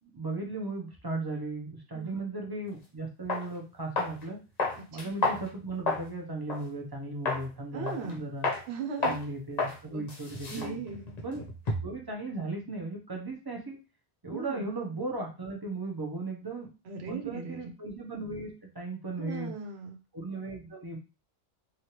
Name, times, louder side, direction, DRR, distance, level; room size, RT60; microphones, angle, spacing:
voice 1, 0.0-4.4 4.9-8.5 9.0-10.8 11.2-11.4 11.8-13.8 14.2-16.7 17.1-19.5 20.1-21.0, right 2 dB, 25° right, 0 dB, 0.6 m, -36 dB
sound 1, 2.7-2.8 3.3-3.5 4.0-4.2 4.6-6.1 6.5-6.6 7.3-7.5 7.9-8.1 8.4-8.6 9.0-9.2 9.6-9.8 10.1-12.0, left 3 dB, 45° left, 0.8 m, -31 dB
voice 2, 7.7-8.2 8.7-9.2 9.9-10.0 10.5-11.1 14.3-14.6 16.9-17.7 19.2-20.0, right 5 dB, 80° right, 3 dB, 0.9 m, -38 dB
3.1 x 2.4 x 2.8 m, 0.32 s
omnidirectional pair, 1.1 m